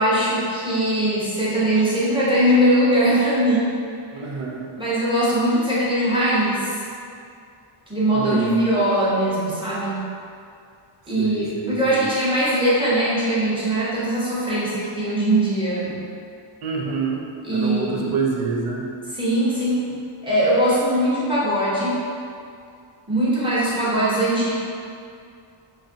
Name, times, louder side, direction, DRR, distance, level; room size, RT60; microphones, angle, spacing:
voice 1, 0.0-3.7 4.8-6.8 7.9-10.0 11.1-16.0 17.4-18.2 19.1-19.8 20.2-22.0 23.1-24.5, right 1 dB, 10° right, -10 dB, 0.7 m, -21 dB
voice 2, 4.1-4.7 8.1-8.6 11.2-12.0 16.6-17.2 17.5-18.9, right 5 dB, 85° right, -1 dB, 0.6 m, -27 dB
3.0 x 2.4 x 2.5 m, 2.4 s
cardioid pair, 120°, 49 cm